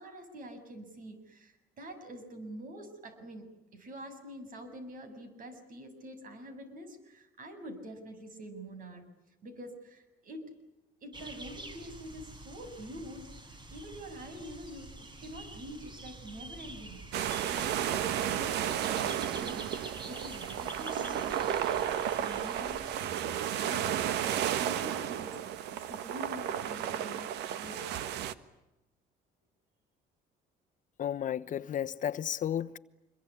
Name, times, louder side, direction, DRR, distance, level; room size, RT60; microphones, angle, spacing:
voice 1, 0.0-9.1 9.4-10.5 11.0-17.1 17.4-27.9, equal, 55° right, 7.3 m, -46 dB
sound 1, 11.1-23.0, right 2 dB, 25° right, 4.4 m, -47 dB
sound 2, 17.1-28.3, right 10 dB, 85° right, 1.4 m, -33 dB
voice 2, 31.0-32.8, left 10 dB, 50° left, 1.0 m, -33 dB
26.5 x 22.5 x 9.9 m
cardioid pair, 110°, 17 cm